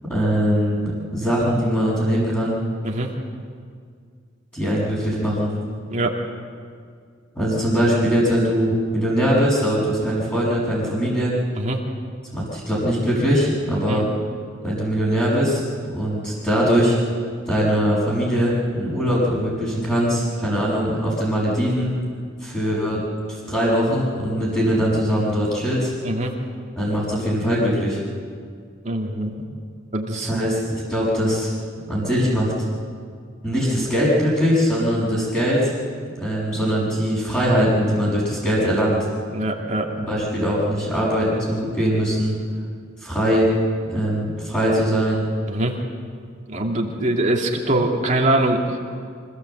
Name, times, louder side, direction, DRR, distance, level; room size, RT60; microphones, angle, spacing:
voice 1, 0.1-2.5 4.5-5.5 7.3-11.4 12.3-14.1 14.6-17.0 17.5-22.0 22.4-23.0 23.3-25.9 26.8-28.0 30.1-31.5 31.9-32.5 33.4-35.7 36.2-39.0 40.0-42.4 43.0-43.5 43.9-45.2, equal, 10° left, -10 dB, 5.9 m, -21 dB
voice 2, 28.8-29.3 29.9-30.4 39.3-39.9 45.5-45.7 46.5-48.6, right 1 dB, 35° right, 0 dB, 2.6 m, -23 dB
25.5 x 16.5 x 8.0 m, 2.1 s
head